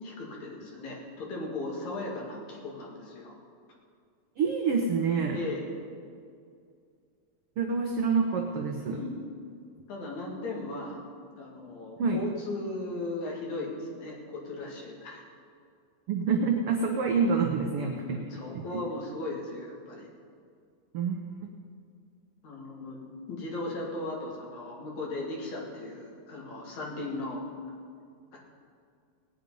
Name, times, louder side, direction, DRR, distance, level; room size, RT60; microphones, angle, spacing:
voice 1, 0.0-3.3 5.3-5.7 8.9-9.3 9.9-11.0 11.4-15.2 17.9-20.1 22.4-27.4 28.3-28.4, left 2 dB, 60° left, -2 dB, 3.3 m, -37 dB
voice 2, 4.4-5.4 7.6-9.0 12.0-12.2 16.1-18.2 18.5-18.8 20.9-21.2, right 5 dB, 75° right, 2 dB, 1.3 m, -27 dB
19.0 x 9.2 x 5.4 m, 2.3 s
omnidirectional pair, 3.8 m